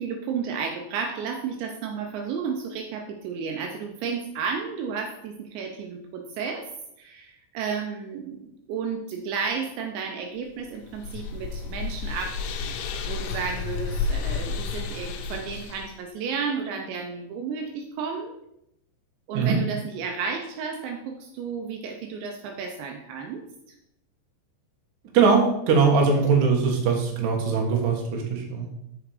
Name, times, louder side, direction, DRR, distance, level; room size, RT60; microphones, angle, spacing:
voice 1, 0.0-6.7 7.0-18.3 19.3-23.4, right 5 dB, 80° right, 3 dB, 2.9 m, -32 dB
sound 1, 10.6-15.9, left 5 dB, 85° left, 3.3 m, -31 dB
voice 2, 25.1-28.7, right 5 dB, 60° right, 1 dB, 2.3 m, -21 dB
7.1 x 7.0 x 4.9 m, 0.80 s
omnidirectional pair, 5.5 m